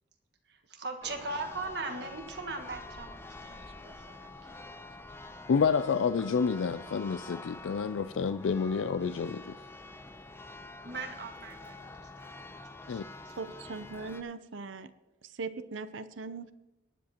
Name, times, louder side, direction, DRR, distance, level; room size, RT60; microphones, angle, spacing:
voice 1, 0.4-4.7 10.8-13.4, right 3 dB, 60° right, 1.5 m, -41 dB
Church bell, 1.0-14.2, left 2 dB, 15° left, 0.5 m, -47 dB
voice 2, 5.5-9.6 12.9-13.0, left 5 dB, 85° left, 0.4 m, -29 dB
voice 3, 13.4-14.9 15.2-16.5, right 4 dB, 85° right, 0.7 m, -40 dB
18.5 x 10.0 x 2.9 m
head